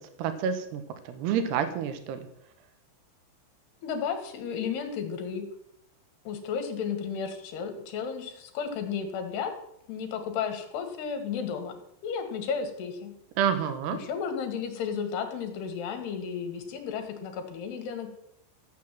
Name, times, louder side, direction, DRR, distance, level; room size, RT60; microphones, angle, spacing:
voice 1, 0.2-2.3 13.4-14.0, right 8 dB, 65° right, 9 dB, 3.0 m, -28 dB
voice 2, 3.8-5.4 6.3-9.5 9.9-11.8 12.0-13.1 13.9-18.1, left 6 dB, 60° left, 7 dB, 3.4 m, -33 dB
14.5 x 8.4 x 7.5 m, 0.76 s
omnidirectional pair, 5.8 m